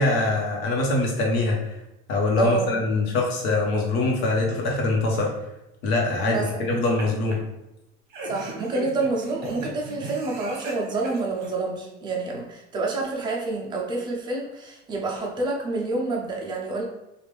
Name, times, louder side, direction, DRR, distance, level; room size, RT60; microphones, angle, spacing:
voice 1, 0.0-1.8 2.1-5.3 5.8-7.4, left 2 dB, 70° left, -1 dB, 1.1 m, -23 dB
voice 2, 2.4-2.7 6.3-6.7 8.2-16.8, right 3 dB, 15° right, -1 dB, 0.4 m, -28 dB
sound 1, 6.4-7.0 7.3-7.4 8.1-11.5, right 2 dB, 30° right, 0.9 m, -37 dB
3.4 x 2.4 x 3.2 m, 0.93 s
cardioid pair, 165°, 32 cm